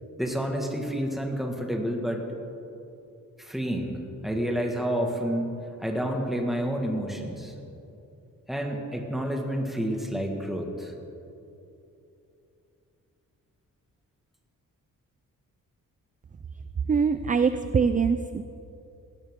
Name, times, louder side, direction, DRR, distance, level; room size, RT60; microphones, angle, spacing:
voice 1, 0.2-2.3 3.4-5.5 5.8-7.5 8.5-10.9, equal, ahead, 1 dB, 1.8 m, -29 dB
voice 2, 16.9-18.4, right 5 dB, 25° right, 11 dB, 0.4 m, -23 dB
19.0 x 17.5 x 3.7 m, 2.8 s
wide cardioid pair, 140°, 32 cm